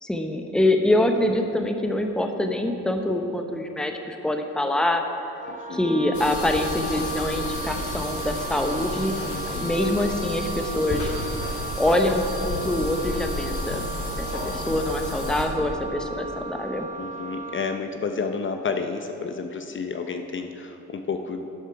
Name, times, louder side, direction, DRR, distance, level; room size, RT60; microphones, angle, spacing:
voice 1, 0.0-5.0 5.7-9.1 9.6-11.1 11.8-13.9 14.2-16.9, left 1 dB, 5° left, 4 dB, 0.8 m, -25 dB
Wind instrument woodwind instrument, 5.4-17.9, right 3 dB, 25° right, 0.7 m, -36 dB
voice 2, 5.5-5.9 9.3-9.8 17.0-21.5, left 5 dB, 40° left, 6 dB, 0.7 m, -31 dB
sound 1, 6.1-15.4, left 2 dB, 65° left, 2.6 m, -32 dB
12.0 x 8.0 x 4.7 m, 2.9 s
cardioid pair, 80°, 31 cm